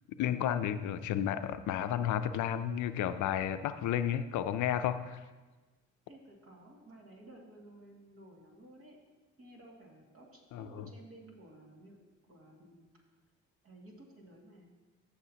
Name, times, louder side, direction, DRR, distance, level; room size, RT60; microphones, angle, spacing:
voice 1, 0.2-5.2 10.5-10.9, left 10 dB, 80° left, 11 dB, 0.5 m, -32 dB
voice 2, 6.1-9.0 9.4-12.0 12.3-12.9 13.6-14.7, right 1 dB, 45° right, -1 dB, 2.3 m, -55 dB
14.5 x 6.6 x 2.9 m, 1.3 s
cardioid pair, 90°, 30 cm